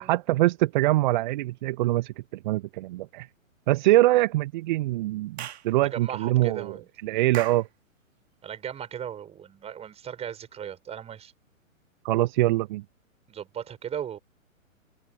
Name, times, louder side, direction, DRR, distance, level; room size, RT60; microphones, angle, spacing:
voice 1, 0.1-2.1 2.4-3.3 3.7-6.7 7.0-7.7 12.0-12.8, right 17 dB, 35° right, 1.5 m, -23 dB
Clapping / Chirp tweet, 5.4-5.7 7.3-7.7, right 10 dB, 50° right, 2.5 m, -36 dB
voice 2, 5.8-6.9 8.4-11.3 13.3-14.2, right 9 dB, 15° right, 6.3 m, -37 dB
figure-of-eight pair, 120°, 41 cm